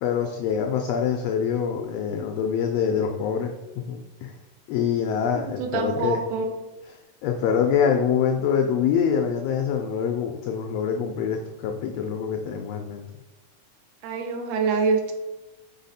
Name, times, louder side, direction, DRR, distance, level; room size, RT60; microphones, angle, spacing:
voice 1, 0.0-3.5 3.9-4.3 4.7-6.2 7.2-13.0, left 7 dB, 85° left, 3 dB, 1.4 m, -25 dB
voice 2, 5.3-6.5 14.0-15.1, right 4 dB, 80° right, 5 dB, 2.1 m, -25 dB
5.7 x 4.1 x 4.1 m, 1.1 s
omnidirectional pair, 3.4 m